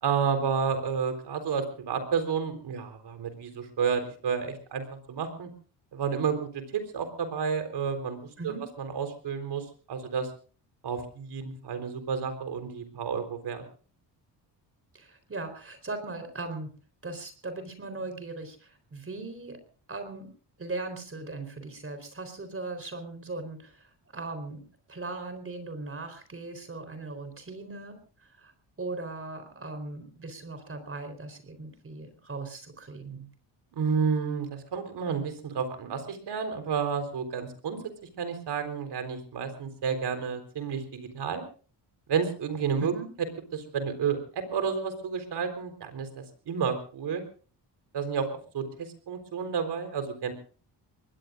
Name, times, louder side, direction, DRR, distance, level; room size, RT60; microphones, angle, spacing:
voice 1, 0.0-5.5 5.9-10.3 10.8-13.6 33.7-37.9 38.2-41.4 42.1-42.9 43.5-47.2 47.9-50.3, right 6 dB, 65° right, 8 dB, 4.0 m, -31 dB
voice 2, 8.4-8.7 14.9-16.7 17.0-19.6 19.9-20.3 20.6-24.6 24.9-28.5 28.8-33.3 42.8-43.1, right 3 dB, 30° right, 9 dB, 4.0 m, -39 dB
24.0 x 20.5 x 2.5 m, 0.38 s
cardioid pair, 95°, 43 cm